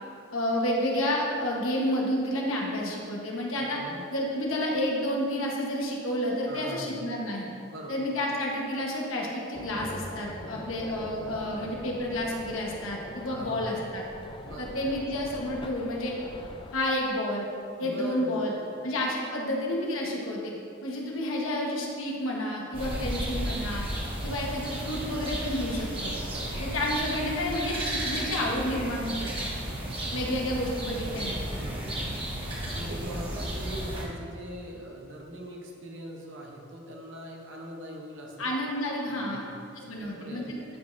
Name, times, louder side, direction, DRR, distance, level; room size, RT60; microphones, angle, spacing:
voice 1, 0.3-3.8 4.1-7.4 7.9-14.0 14.6-16.1 16.7-17.4 17.8-18.5 18.8-20.5 20.8-23.9 24.2-26.1 26.6-29.3 30.1-31.4 38.4-39.4 39.7-40.6, left 1 dB, 80° left, -2 dB, 1.3 m, -30 dB
voice 2, 3.5-4.0 6.5-6.9 7.7-8.0 13.3-13.6 14.4-14.7 17.8-18.8 22.7-23.3 26.3-26.5 29.7-30.4 31.4-32.2 32.5-38.5 39.0-39.6 40.0-40.6, right 1 dB, 65° right, -1 dB, 0.9 m, -42 dB
sound 1, 9.5-16.8, left 2 dB, 25° left, 0.3 m, -43 dB
sound 2, 22.7-34.0, right 1 dB, 25° right, 1.4 m, -33 dB
12.0 x 5.2 x 2.7 m, 2.5 s
head